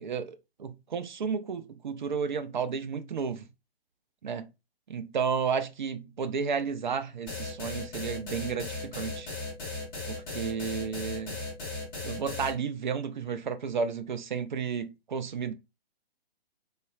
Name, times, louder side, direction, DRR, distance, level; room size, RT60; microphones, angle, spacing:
voice 1, 0.0-3.5 4.2-4.5 4.9-9.3 10.1-11.4 12.0-15.5, right 6 dB, 50° right, 0.4 m, -32 dB
sound 1, 7.3-12.5, left 3 dB, 20° left, 0.6 m, -36 dB
3.3 x 2.0 x 2.3 m
figure-of-eight pair, 125°, 31 cm